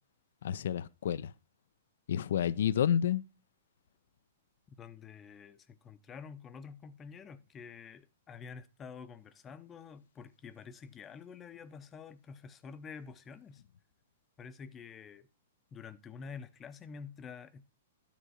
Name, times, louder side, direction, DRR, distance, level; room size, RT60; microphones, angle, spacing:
voice 1, 0.4-1.3 2.1-3.2, left 9 dB, 65° left, 0.4 m, -30 dB
voice 2, 4.7-13.6 14.4-15.3 15.7-17.6, left 6 dB, 20° left, 0.7 m, -48 dB
10.0 x 3.6 x 6.4 m
figure-of-eight pair, 110°, 0 cm